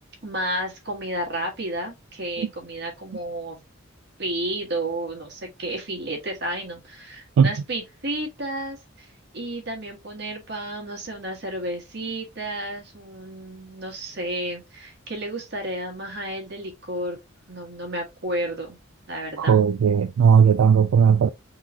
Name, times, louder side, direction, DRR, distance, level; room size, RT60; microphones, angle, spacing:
voice 1, 0.2-3.6 4.2-17.2 17.5-18.8 19.1-19.6, right 1 dB, 55° right, 1.5 m, -32 dB
voice 2, 19.5-21.3, right 7 dB, 85° right, 0.3 m, -16 dB
3.8 x 3.1 x 2.7 m
head